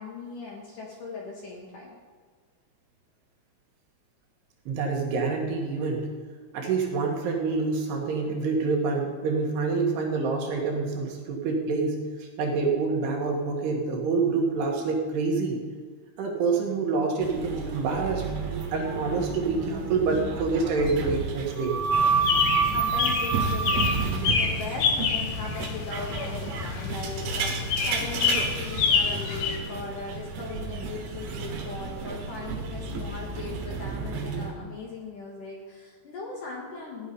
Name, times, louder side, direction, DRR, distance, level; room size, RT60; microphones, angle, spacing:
voice 1, 0.0-2.0 22.6-37.1, left 4 dB, 60° left, -2 dB, 2.5 m, -39 dB
voice 2, 4.7-6.1 6.5-15.6 16.2-18.2 18.7-21.8 22.3-22.4, right 4 dB, 65° right, 0 dB, 3.3 m, -27 dB
sound 1, 17.2-34.5, right 5 dB, 90° right, 4.0 m, -31 dB
sound 2, 21.9-29.6, left 6 dB, 85° left, 1.8 m, -28 dB
16.0 x 10.0 x 5.4 m, 1.5 s
omnidirectional pair, 5.4 m